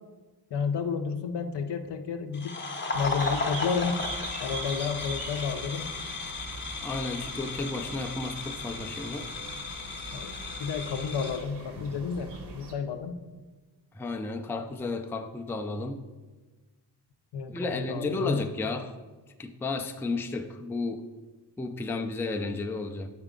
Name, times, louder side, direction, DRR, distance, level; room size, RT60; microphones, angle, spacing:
voice 1, 0.5-2.6 2.9-4.0 4.4-5.9 10.1-13.1 17.3-18.4, left 6 dB, 75° left, 7 dB, 0.6 m, -31 dB
sound 1, 2.3-11.4, left 3 dB, 30° left, 0.7 m, -35 dB
sound 2, 2.9-12.7, right 3 dB, 75° right, 1.0 m, -42 dB
voice 2, 6.8-9.3 14.0-16.0 17.5-18.9 19.4-21.0 21.6-23.1, left 3 dB, 5° left, 5 dB, 0.3 m, -33 dB
8.0 x 4.4 x 3.7 m, 1.3 s
wide cardioid pair, 110°, 41 cm